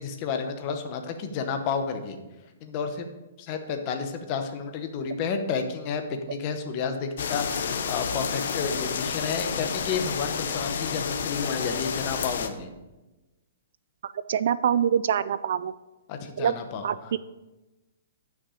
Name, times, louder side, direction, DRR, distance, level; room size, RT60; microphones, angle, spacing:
voice 1, 0.0-2.2 2.6-3.1 3.4-12.7 16.1-17.1, left 5 dB, 25° left, 6 dB, 0.9 m, -31 dB
sound 1, 7.2-12.5, left 6 dB, 60° left, 0.8 m, -30 dB
voice 2, 14.3-15.7 16.4-16.5 16.8-17.2, right 8 dB, 55° right, 16 dB, 0.3 m, -24 dB
9.9 x 6.0 x 5.0 m, 1.1 s
hypercardioid pair, 170°, 0 cm